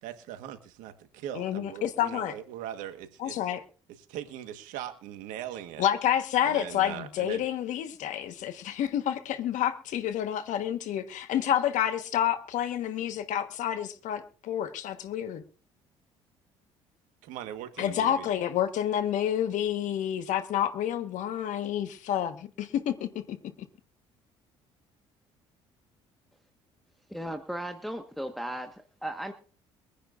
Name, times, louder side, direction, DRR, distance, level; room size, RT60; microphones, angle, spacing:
voice 1, 0.0-3.4 4.1-5.9 6.4-7.4 17.2-18.3, right 11 dB, 80° right, 1.5 m, -40 dB
voice 2, 1.3-2.3 3.2-3.6 5.8-15.4 17.8-23.4, left 10 dB, 65° left, 1.4 m, -29 dB
voice 3, 27.1-28.7 29.0-29.3, right 1 dB, ahead, 1.4 m, -35 dB
23.0 x 10.0 x 2.6 m
supercardioid pair, 65°, 13 cm